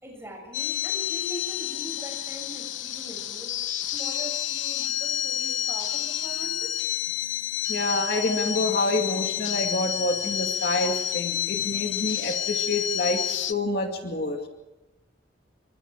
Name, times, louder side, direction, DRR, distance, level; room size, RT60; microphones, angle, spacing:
voice 1, 0.0-3.5 3.8-6.8, equal, 15° right, 1 dB, 6.9 m, -41 dB
sound 1, 0.5-13.5, left 12 dB, 75° left, 0.8 m, -29 dB
voice 2, 7.7-14.4, left 2 dB, 55° left, 3 dB, 2.4 m, -27 dB
28.0 x 24.0 x 4.8 m, 1.0 s
head